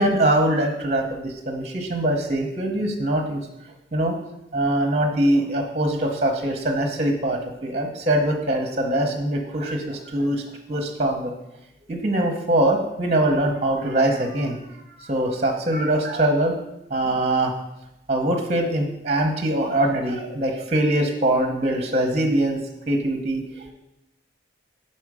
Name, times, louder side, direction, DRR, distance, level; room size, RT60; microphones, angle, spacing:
voice 1, 0.0-3.4 3.9-4.1 4.5-10.4 10.7-11.3 11.9-14.6 15.0-16.5 16.9-17.5 18.1-22.6 22.9-23.7, right 1 dB, 35° right, 4 dB, 0.7 m, -22 dB
6.2 x 4.3 x 4.8 m, 0.89 s
head